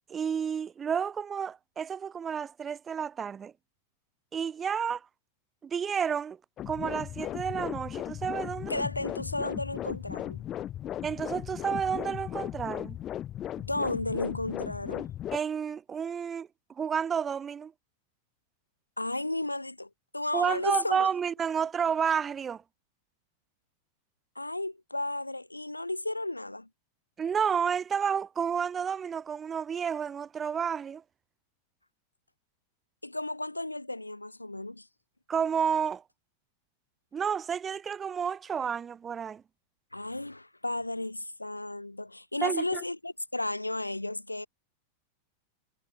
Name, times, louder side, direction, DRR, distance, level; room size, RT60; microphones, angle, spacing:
voice 1, 0.1-3.5 4.3-5.0 5.6-6.4 6.7-8.7 11.0-13.0 15.3-16.5 16.8-17.7 20.3-22.6 27.2-31.0 35.3-36.0 37.1-39.4 42.4-42.8, right 7 dB, 20° right, 1.1 m, -30 dB
sound 1, 6.6-15.4, left 11 dB, 30° left, 2.6 m, -37 dB
voice 2, 8.7-10.5 13.6-15.1 19.0-21.1 24.4-26.7 33.0-34.9 39.9-44.5, left 2 dB, 85° left, 1.8 m, -33 dB
figure-of-eight pair, 90°, 0 cm